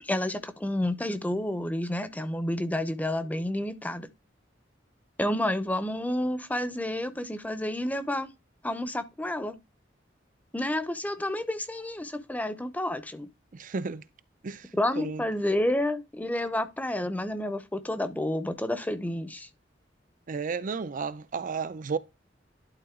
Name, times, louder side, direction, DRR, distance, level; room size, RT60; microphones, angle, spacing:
voice 1, 0.0-4.1 5.2-8.3 8.6-9.5 10.5-13.3 14.7-19.5, left 1 dB, 10° left, 0.7 m, -30 dB
voice 2, 13.5-14.0 14.4-15.2 20.3-22.0, right 5 dB, 45° right, 0.5 m, -33 dB
11.5 x 3.9 x 3.7 m
head